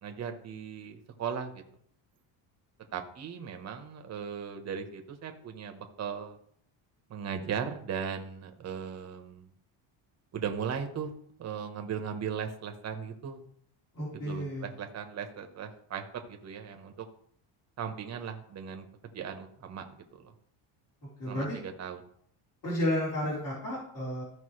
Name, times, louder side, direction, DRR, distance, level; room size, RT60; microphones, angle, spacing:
voice 1, 0.0-1.6 2.9-6.4 7.1-9.5 10.3-11.1 11.4-13.4 14.2-17.1 17.8-18.9 19.1-19.9 20.1-20.3 21.2-22.1, right 7 dB, 35° right, 5 dB, 1.2 m, -37 dB
voice 2, 13.9-14.7 21.2-21.6 22.6-24.2, left 1 dB, 45° left, -8 dB, 4.3 m, -32 dB
14.5 x 5.2 x 3.3 m, 0.65 s
cardioid pair, 140°, 46 cm